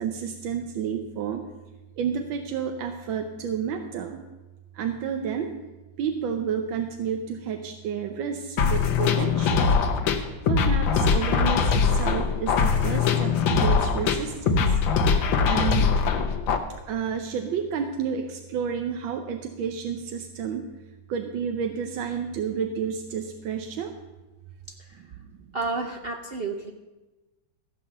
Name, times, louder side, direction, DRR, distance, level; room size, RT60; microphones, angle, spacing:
voice 1, 0.0-1.4 2.0-4.2 4.7-5.5 6.0-9.7 10.5-14.8 15.4-15.9 16.9-20.7 21.1-23.9, right 7 dB, 85° right, 6 dB, 1.5 m, -30 dB
sound 1, 8.6-16.6, left 5 dB, 90° left, 1.7 m, -22 dB
voice 2, 25.5-26.7, right 3 dB, 60° right, 4 dB, 0.6 m, -31 dB
14.5 x 5.7 x 7.8 m, 1.1 s
omnidirectional pair, 2.0 m